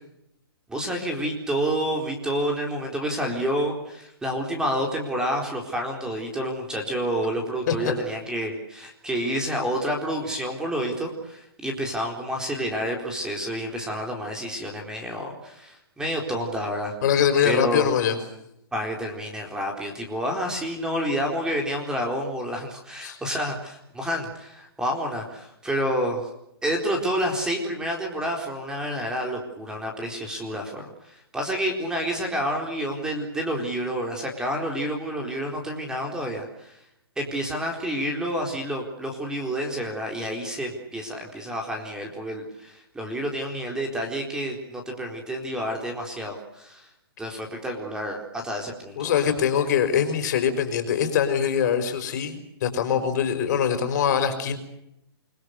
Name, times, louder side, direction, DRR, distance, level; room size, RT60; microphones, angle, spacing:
voice 1, 0.7-17.0 17.4-17.9 18.7-26.3 26.6-36.8 37.2-46.9 47.2-49.2, equal, 5° right, 2 dB, 4.2 m, -29 dB
voice 2, 17.0-18.2 23.0-23.2 49.0-54.6, left 8 dB, 45° left, 8 dB, 5.3 m, -23 dB
28.5 x 22.5 x 6.6 m, 0.80 s
hypercardioid pair, 155°, 13 cm